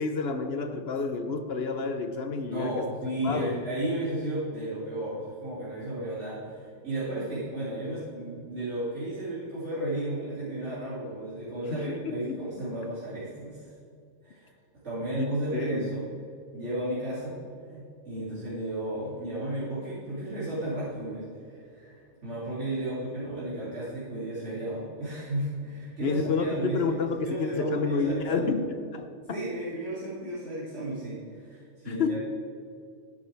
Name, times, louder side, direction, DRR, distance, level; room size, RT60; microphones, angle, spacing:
voice 1, 0.0-2.9 3.2-3.6 11.7-12.5 15.2-15.3 15.5-15.9 26.0-29.4 31.9-32.2, left 4 dB, 60° left, 8 dB, 0.9 m, -30 dB
voice 2, 2.5-13.7 14.2-14.5 14.8-16.1 16.5-17.3 17.7-28.6 29.3-32.2, right 1 dB, 65° right, -11 dB, 3.1 m, -33 dB
12.0 x 9.6 x 3.4 m, 2.4 s
omnidirectional pair, 1.3 m